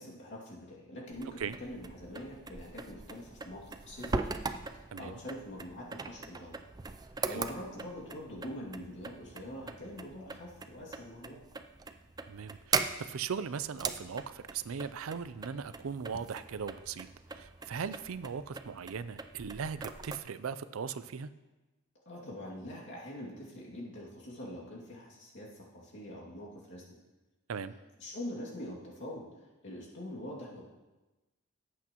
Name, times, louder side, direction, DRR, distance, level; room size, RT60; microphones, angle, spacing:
voice 1, 0.0-4.2 4.7-6.6 7.2-11.4 22.1-27.0 28.0-30.6, left 1 dB, 60° left, -4 dB, 2.4 m, -44 dB
sound 1, 1.1-20.2, right 4 dB, 20° right, 0.4 m, -41 dB
voice 2, 12.3-17.1 17.3-21.3 27.5-27.7, right 6 dB, 75° right, 14 dB, 0.5 m, -39 dB
17.5 x 8.3 x 3.0 m, 1.1 s
head